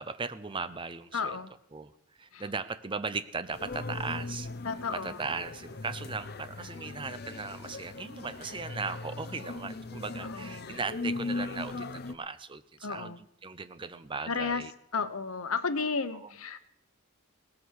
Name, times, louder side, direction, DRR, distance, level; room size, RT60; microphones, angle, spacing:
voice 1, 0.0-1.4 1.7-1.9 2.2-4.5 4.9-13.1 13.4-14.7 16.2-16.3, right 4 dB, 25° right, 13 dB, 0.6 m, -37 dB
voice 2, 1.1-1.5 2.3-2.4 4.6-5.2 10.2-10.8 12.8-13.2 14.3-14.6 14.9-16.6, left 4 dB, 75° left, 10 dB, 1.1 m, -33 dB
sound 1, 3.5-12.1, left 3 dB, 45° left, 0.8 m, -39 dB
18.0 x 13.5 x 4.8 m, 0.73 s
head